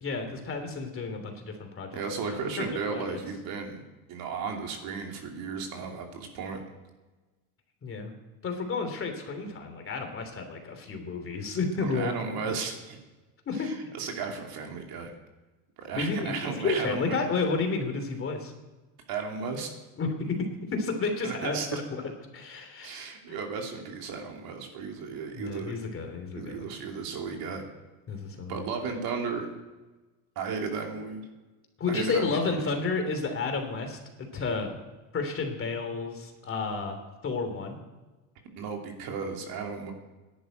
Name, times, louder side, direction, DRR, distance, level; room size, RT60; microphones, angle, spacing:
voice 1, 0.0-2.0 2.3-3.2 7.8-8.1 8.4-12.1 13.5-13.7 15.9-18.5 20.0-21.6 22.3-23.0 23.3-23.4 25.3-26.6 28.1-28.6 31.8-34.0 34.3-34.7 35.1-37.8, left 4 dB, 30° left, 5 dB, 3.0 m, -31 dB
voice 2, 1.9-3.8 4.1-6.6 11.8-13.0 13.5-15.1 15.8-17.2 19.1-19.7 21.2-21.8 22.8-25.7 26.3-27.6 28.5-29.5 30.4-31.2 31.9-32.6 38.5-39.9, right 5 dB, 50° right, 2 dB, 3.0 m, -34 dB
12.0 x 11.0 x 9.2 m, 1.2 s
supercardioid pair, 115°, 45 cm